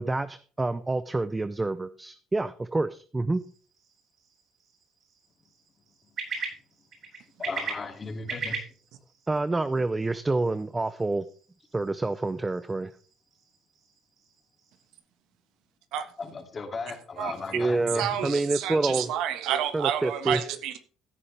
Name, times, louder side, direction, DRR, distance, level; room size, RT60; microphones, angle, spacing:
voice 1, 0.0-3.5 9.3-11.3 11.7-12.9 17.5-19.1 19.7-20.4, right 2 dB, 15° right, 13 dB, 0.5 m, -27 dB
sound 1, 3.3-15.0, right 4 dB, 50° right, 7.4 m, -42 dB
voice 2, 7.4-8.6 16.2-18.2, left 4 dB, 30° left, 5 dB, 2.6 m, -36 dB
voice 3, 17.2-17.6 17.9-20.8, right 10 dB, 75° right, 9 dB, 1.5 m, -30 dB
15.5 x 9.8 x 3.4 m, 0.41 s
cardioid pair, 115°, 0 cm